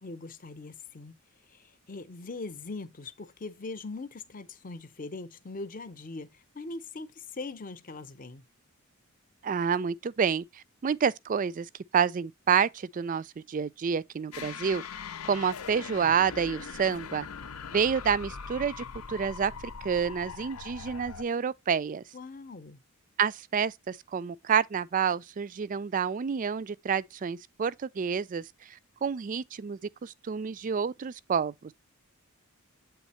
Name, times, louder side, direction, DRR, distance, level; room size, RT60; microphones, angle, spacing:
voice 1, 0.0-1.1 1.5-8.4 22.1-22.8, left 3 dB, 40° left, 0.7 m, -41 dB
voice 2, 9.4-17.3 17.7-19.5 19.8-22.0 23.2-31.7, right 7 dB, 35° right, 0.3 m, -29 dB
sound 1, 14.3-21.2, left 6 dB, 85° left, 0.7 m, -41 dB
8.2 x 3.5 x 4.2 m
head